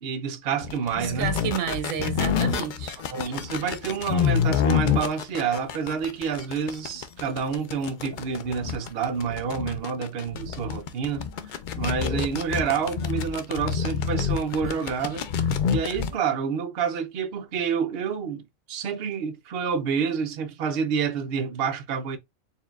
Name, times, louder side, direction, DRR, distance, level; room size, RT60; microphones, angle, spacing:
voice 1, 0.0-1.3 3.1-15.3 15.7-18.4 18.7-22.2, right 6 dB, 55° right, 0.7 m, -28 dB
sound 1, 0.6-16.1, left 7 dB, 70° left, 0.4 m, -27 dB
voice 2, 1.0-3.0, right 9 dB, 75° right, 1.1 m, -30 dB
4.4 x 3.6 x 2.3 m
omnidirectional pair, 1.4 m